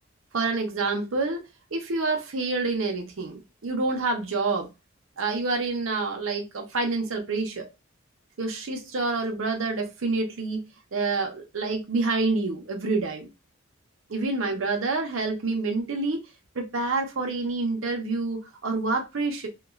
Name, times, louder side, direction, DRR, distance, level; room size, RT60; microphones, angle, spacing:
voice 1, 0.3-4.7 5.2-7.7 8.4-10.6 10.9-13.3 14.1-16.2 16.5-19.5, right 3 dB, 90° right, 0.7 m, -27 dB
2.9 x 2.3 x 2.4 m
head